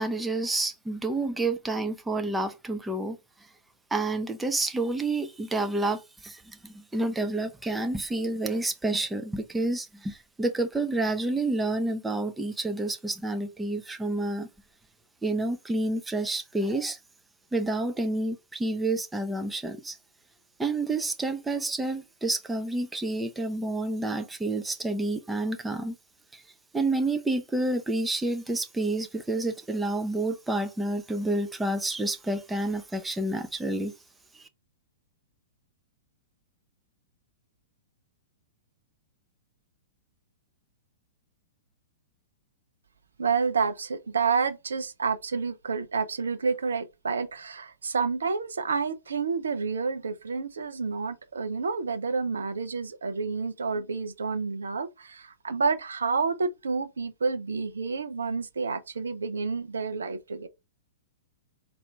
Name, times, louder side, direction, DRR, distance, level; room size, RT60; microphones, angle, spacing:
voice 1, 0.0-3.2 3.9-14.5 15.2-17.0 17.5-20.0 20.6-25.9 26.3-26.4 26.7-33.9 34.3-34.4, right 2 dB, 5° right, 0.6 m, -29 dB
voice 2, 43.2-60.5, right 5 dB, 70° right, 0.5 m, -29 dB
4.2 x 2.6 x 3.2 m
figure-of-eight pair, 105°, 0 cm